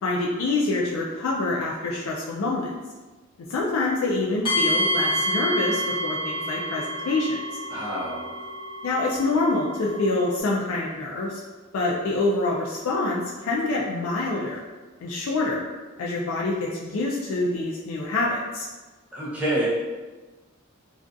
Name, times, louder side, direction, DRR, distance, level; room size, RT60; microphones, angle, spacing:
voice 1, 0.0-2.7 3.5-7.6 8.8-11.4 11.7-14.6 15.0-15.6 16.0-18.7, left 2 dB, 80° left, -4 dB, 0.3 m, -26 dB
sound 1, 4.4-10.4, equal, 25° left, 1.0 m, -28 dB
voice 2, 7.7-8.3 19.1-19.7, right 1 dB, 5° right, -8 dB, 0.4 m, -27 dB
2.4 x 2.2 x 2.5 m, 1.2 s
head